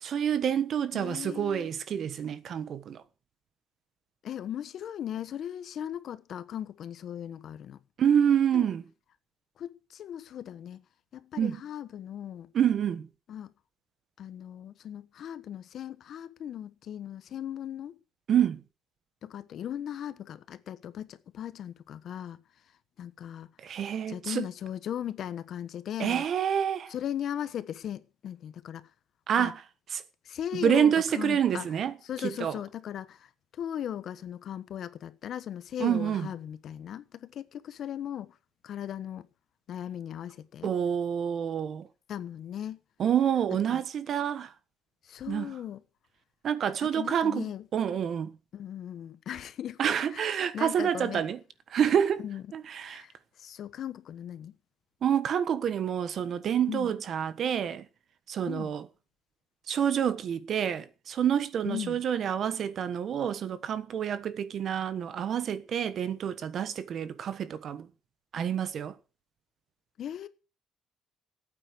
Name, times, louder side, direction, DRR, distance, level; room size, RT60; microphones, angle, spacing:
voice 1, 0.0-3.0 8.0-8.8 11.4-11.6 12.5-13.1 18.3-18.6 23.6-24.5 26.0-26.9 29.3-29.6 29.9-30.0 30.5-31.9 32.2-32.5 35.8-36.3 40.6-41.9 43.0-44.5 45.3-45.5 46.4-47.4 47.7-48.3 49.8-51.4 51.7-52.2 52.5-53.0 55.0-57.8 58.3-58.8 59.7-67.9 68.3-68.9, right 8 dB, 55° right, 1.2 m, -28 dB
voice 2, 0.9-1.7 4.2-7.8 8.5-8.7 9.6-10.8 11.1-12.5 13.3-13.5 14.2-18.0 19.2-22.4 23.0-23.5 24.1-26.3 26.9-28.9 29.4-29.5 30.2-31.7 32.0-38.4 38.6-39.3 39.7-40.7 42.1-42.8 43.7-43.8 45.0-45.8 46.8-47.7 48.5-49.8 50.1-51.2 52.2-52.4 52.8-54.6 56.7-57.0 58.5-58.7 61.6-62.0 70.0-70.3, left 10 dB, 60° left, 1.2 m, -38 dB
14.5 x 8.8 x 6.6 m
cardioid pair, 130°, 0 cm